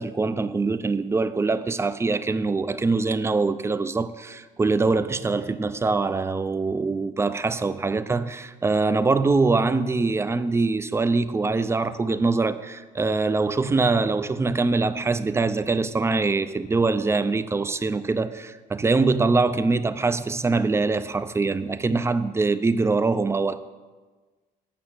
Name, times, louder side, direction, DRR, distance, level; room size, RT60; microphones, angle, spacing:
voice 1, 0.0-23.6, right 3 dB, 15° right, 0.4 m, -23 dB
8.4 x 5.9 x 7.4 m
cardioid pair, 110°, 17 cm